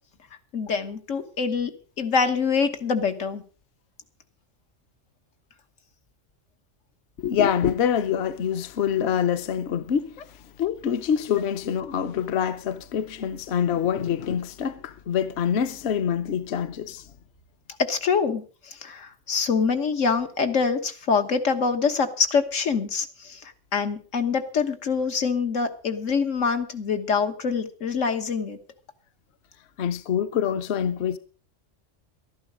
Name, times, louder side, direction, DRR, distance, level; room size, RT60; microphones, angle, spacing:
voice 1, 0.5-3.4 17.8-28.6, left 5 dB, 85° left, 1.7 m, -25 dB
voice 2, 7.2-10.1 10.6-17.0 29.8-31.2, left 8 dB, 60° left, 1.0 m, -25 dB
12.5 x 11.0 x 6.3 m
omnidirectional pair, 1.3 m